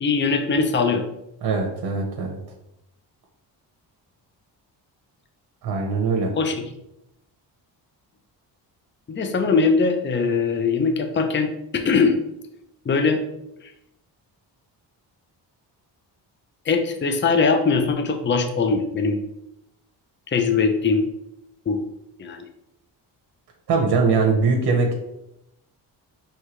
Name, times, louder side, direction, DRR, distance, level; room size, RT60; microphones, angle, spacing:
voice 1, 0.0-1.1 6.3-6.6 9.1-12.2 12.9-13.2 16.7-19.2 20.3-21.1 21.7-21.8 22.2-22.5, left 4 dB, 25° left, 6 dB, 0.6 m, -21 dB
voice 2, 1.4-2.4 5.6-6.3 23.7-24.9, right 4 dB, 60° right, 1 dB, 0.9 m, -21 dB
4.6 x 3.2 x 3.1 m, 0.83 s
supercardioid pair, 55°, 44 cm